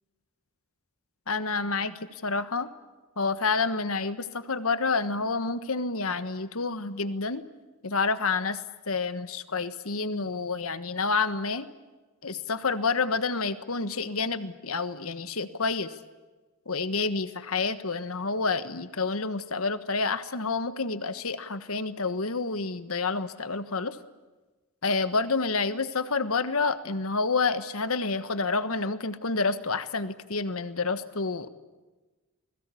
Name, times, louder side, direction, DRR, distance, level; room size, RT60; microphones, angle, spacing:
voice 1, 1.3-2.7 3.2-7.4 7.8-8.6 8.9-11.7 12.2-16.0 16.7-24.0 24.8-31.5, left 4 dB, 75° left, 12 dB, 1.4 m, -29 dB
29.0 x 21.0 x 8.5 m, 1.2 s
head